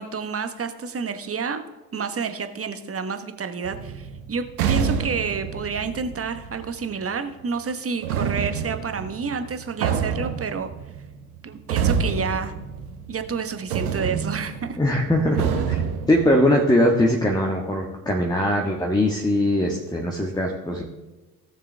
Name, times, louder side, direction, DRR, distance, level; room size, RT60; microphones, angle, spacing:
voice 1, 0.0-1.6 1.9-10.7 11.4-12.5 13.1-14.8, right 5 dB, 30° right, 8 dB, 1.3 m, -29 dB
sound 1, 3.6-7.0 8.0-13.4 13.7-16.5, right 7 dB, 75° right, 1.2 m, -28 dB
voice 2, 14.8-15.8 16.1-20.8, left 1 dB, 10° left, 1 dB, 1.6 m, -21 dB
18.0 x 6.5 x 3.4 m, 1.1 s
figure-of-eight pair, 45°, 45 cm